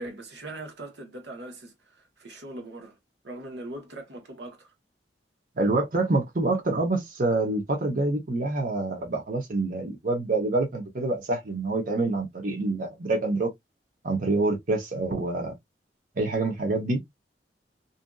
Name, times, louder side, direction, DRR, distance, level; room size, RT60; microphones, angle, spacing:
voice 1, 0.0-3.0 3.2-4.7, right 1 dB, 85° right, 1.1 m, -40 dB
voice 2, 5.6-13.5 14.0-15.5 16.2-17.0, right 2 dB, 50° right, 0.8 m, -26 dB
2.7 x 2.5 x 2.2 m
head